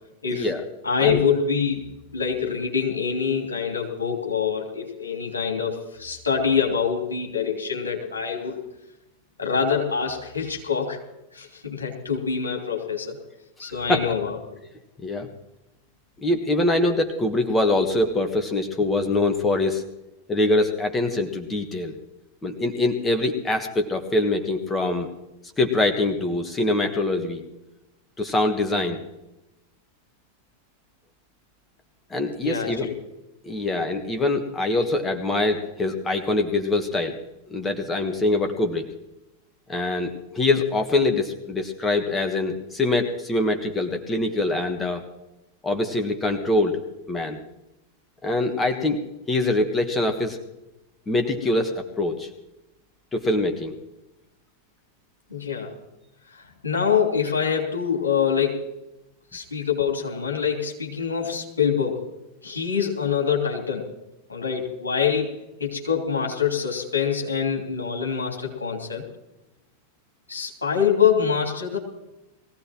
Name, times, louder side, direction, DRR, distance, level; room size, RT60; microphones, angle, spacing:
voice 1, 0.3-0.6 1.0-1.2 13.6-14.1 15.0-15.3 16.2-19.8 20.3-21.9 22.4-25.1 25.6-27.4 28.2-29.0 32.1-32.9 33.4-37.2 37.5-38.9 39.7-45.0 45.6-46.8 47.1-47.4 48.2-49.0 49.3-50.4 51.1-52.3 53.1-53.7, left 2 dB, 15° left, 5 dB, 1.4 m, -24 dB
voice 2, 0.8-1.9 2.1-8.6 9.4-11.0 11.3-13.2 13.6-14.4 32.4-33.0 55.3-55.7 56.3-58.7 59.3-62.0 62.4-63.9 64.3-65.3 65.6-69.0 70.3-71.8, left 7 dB, 75° left, 0 dB, 3.1 m, -25 dB
21.0 x 16.0 x 3.1 m, 0.95 s
figure-of-eight pair, 90°, 0 cm